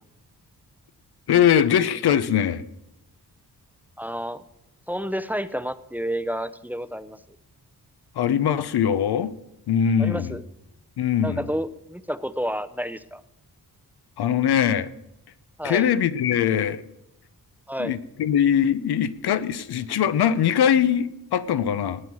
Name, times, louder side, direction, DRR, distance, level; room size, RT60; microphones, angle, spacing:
voice 1, 1.3-2.6 8.2-9.3 9.7-10.3 11.0-11.4 14.2-14.9 15.6-16.8 17.8-22.0, left 9 dB, 85° left, 14 dB, 0.9 m, -21 dB
voice 2, 4.0-4.4 4.9-7.2 10.0-10.4 11.2-13.2 15.6-15.9 17.7-18.0, equal, 5° right, 13 dB, 0.6 m, -30 dB
19.0 x 8.3 x 6.2 m, 0.86 s
wide cardioid pair, 100°, 38 cm